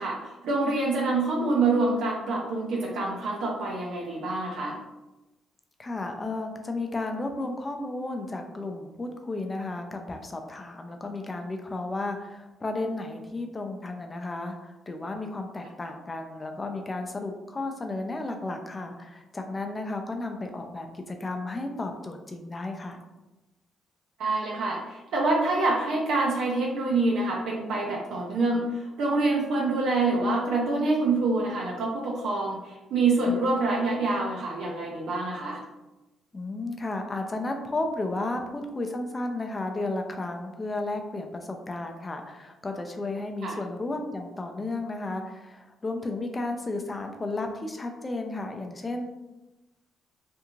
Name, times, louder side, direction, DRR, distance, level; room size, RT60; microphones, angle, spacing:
voice 1, 0.0-4.8 24.2-35.6 43.4-43.6, right 3 dB, 80° right, -3 dB, 0.5 m, -26 dB
voice 2, 5.8-23.0 36.3-49.0, left 2 dB, 25° left, 4 dB, 0.4 m, -33 dB
2.5 x 2.3 x 2.9 m, 1.0 s
cardioid pair, 90°, 0 cm